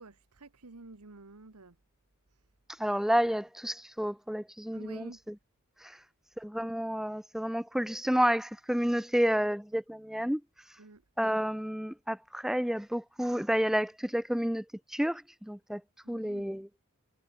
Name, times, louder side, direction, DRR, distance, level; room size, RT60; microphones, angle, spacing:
voice 1, 0.0-1.7 4.7-5.2 10.8-11.0 16.0-16.5, right 3 dB, 80° right, 1.3 m, -50 dB
voice 2, 2.8-5.3 5.8-6.0 6.4-10.4 11.2-14.6 14.9-15.8 16.1-16.7, equal, ahead, 0.6 m, -30 dB
head